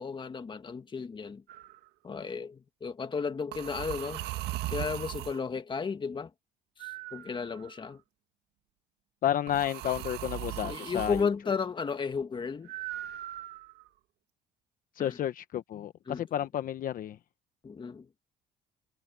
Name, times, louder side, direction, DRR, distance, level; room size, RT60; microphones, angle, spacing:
voice 1, 0.0-1.4 2.0-4.3 4.7-6.3 6.8-8.0 10.6-12.7 15.0-15.2 16.1-16.2 17.6-18.1, left 5 dB, 30° left, 1.9 m, -34 dB
sound 1, 1.5-1.8 3.5-5.4 6.8-7.9 9.5-11.3 12.7-13.9, right 15 dB, 80° right, 1.6 m, -38 dB
voice 2, 9.2-11.3 14.9-17.2, left 11 dB, 55° left, 1.0 m, -31 dB
cardioid pair, 110°, 17 cm